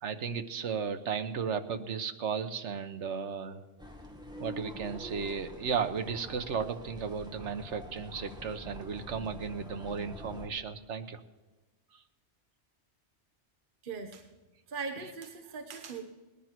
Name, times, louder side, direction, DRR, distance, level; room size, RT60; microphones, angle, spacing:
voice 1, 0.0-3.6 4.4-11.2, right 6 dB, 80° right, 9 dB, 1.3 m, -35 dB
sound 1, 3.8-10.5, left 1 dB, 5° right, 1.8 m, -46 dB
voice 2, 13.8-14.2 14.7-16.0, right 5 dB, 50° right, 5 dB, 1.2 m, -39 dB
19.0 x 10.0 x 5.9 m, 1.2 s
omnidirectional pair, 1.2 m